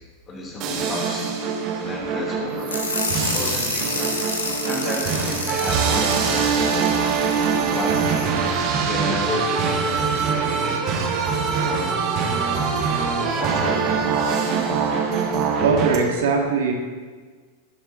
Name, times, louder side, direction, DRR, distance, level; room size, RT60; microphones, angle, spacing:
voice 1, 0.3-1.3 1.8-2.7 3.3-4.1 4.6-7.0 7.4-8.2 8.7-10.8 11.6-12.0 12.4-14.1, left 1 dB, 25° left, -2 dB, 3.6 m, -32 dB
sound 1, 0.6-16.0, right 5 dB, 40° right, 1.7 m, -23 dB
sound 2, 2.7-8.5, left 4 dB, 70° left, 1.3 m, -30 dB
voice 2, 15.6-16.7, right 5 dB, 60° right, 1 dB, 1.8 m, -21 dB
17.5 x 10.0 x 3.0 m, 1.5 s
figure-of-eight pair, 90°, 0 cm